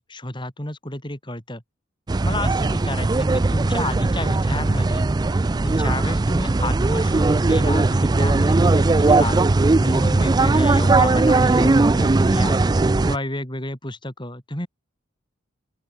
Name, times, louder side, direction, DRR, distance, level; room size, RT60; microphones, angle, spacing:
voice 1, 0.0-1.6 2.2-5.1 5.6-9.4 9.8-12.6 13.0-14.7, left 1 dB, 25° left, 5.0 m, -31 dB
sound 1, 2.1-13.2, right 3 dB, 20° right, 0.3 m, -19 dB
open air
head